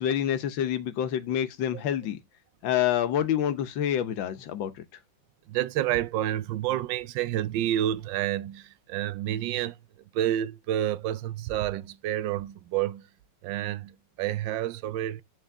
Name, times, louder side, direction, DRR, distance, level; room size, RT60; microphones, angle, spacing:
voice 1, 0.0-2.2 2.6-4.7, left 10 dB, 85° left, 1.6 m, -27 dB
voice 2, 5.5-9.8 10.1-13.1 13.4-15.2, right 12 dB, 80° right, 1.3 m, -29 dB
9.2 x 4.2 x 3.5 m
omnidirectional pair, 2.0 m